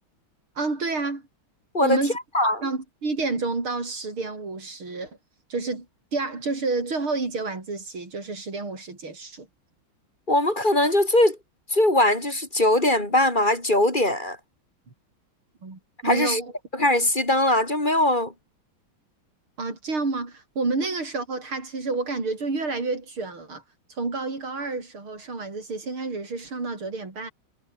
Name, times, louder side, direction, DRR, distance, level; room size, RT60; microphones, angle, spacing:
voice 1, 0.6-1.2 1.8-2.2 2.4-5.2 5.5-5.9 6.1-9.5 15.6-16.5 19.6-23.6 23.9-27.3, right 3 dB, 85° right, 6.2 m, -29 dB
voice 2, 2.3-2.7 10.3-11.4 11.7-14.4 16.0-16.4 16.7-18.3, left 1 dB, 20° left, 4.9 m, -21 dB
omnidirectional pair, 2.3 m